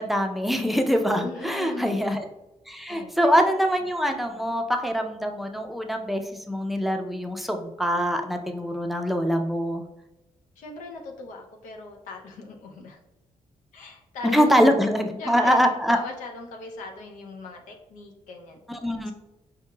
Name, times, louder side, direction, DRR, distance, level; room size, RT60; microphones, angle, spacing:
voice 1, 0.0-2.2 2.7-6.2 6.5-9.9 14.2-16.0 18.7-19.1, equal, ahead, 5 dB, 0.5 m, -24 dB
voice 2, 1.2-2.0 2.9-3.2 10.6-13.0 13.7-14.8 15.2-18.6 19.1-19.2, left 3 dB, 90° left, 2 dB, 0.6 m, -39 dB
4.6 x 2.9 x 2.2 m, 0.97 s
cardioid pair, 70°, 13 cm